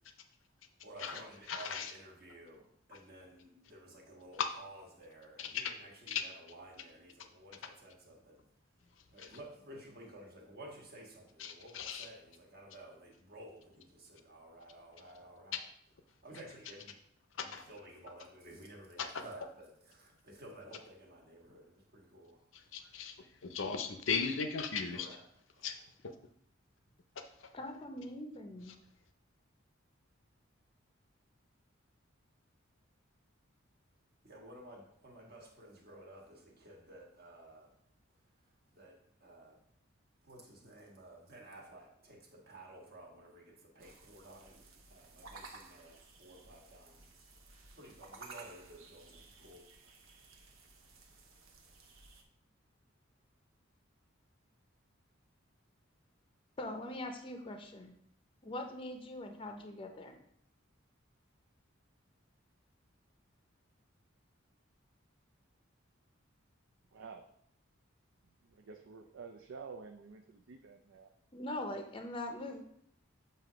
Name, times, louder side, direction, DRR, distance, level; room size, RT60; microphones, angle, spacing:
voice 1, 0.8-8.4 9.1-15.6 16.2-17.0 17.4-22.4 24.9-25.2 25.6-25.7 34.2-37.7 38.7-39.6 40.2-47.1 47.8-49.7, right 1 dB, 50° right, 0 dB, 1.4 m, -53 dB
voice 2, 1.5-1.9 4.4-4.5 5.4-5.7 6.1-6.2 9.2-9.4 11.4-12.1 15.5-15.6 17.4-17.6 19.0-19.2 22.5-23.2 23.5-25.2 25.6-25.8 26.0-26.1 27.4-27.5, left 6 dB, 70° left, 7 dB, 0.6 m, -37 dB
voice 3, 27.5-28.7 56.6-57.9 58.4-60.2 71.3-72.6, left 1 dB, 25° left, 5 dB, 0.6 m, -42 dB
sound 1, 43.8-52.2, right 3 dB, 90° right, 0.9 m, -56 dB
voice 4, 66.9-67.3 68.4-71.1, right 5 dB, 75° right, 3 dB, 0.5 m, -50 dB
7.6 x 2.8 x 4.9 m, 0.69 s
head